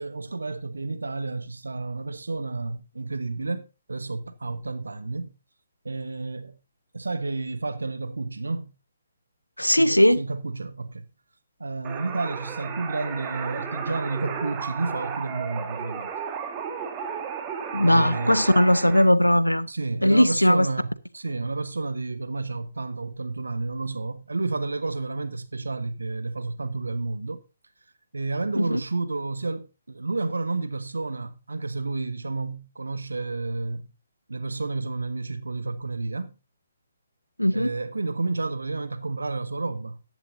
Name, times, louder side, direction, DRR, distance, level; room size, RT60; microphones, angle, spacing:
voice 1, 0.0-5.3 5.8-6.6 6.9-8.7 9.7-11.0 11.6-16.1 17.9-18.4 19.7-27.4 28.1-33.9 34.3-36.3 37.5-40.0, right 3 dB, 70° right, 1.2 m, -31 dB
voice 2, 9.6-10.2 17.7-19.7 20.0-20.7 28.6-28.8 37.4-37.7, equal, 85° left, 0.8 m, -19 dB
sound 1, 11.8-19.0, right 7 dB, 20° right, 2.7 m, -34 dB
15.0 x 11.0 x 2.6 m
figure-of-eight pair, 135°, 0 cm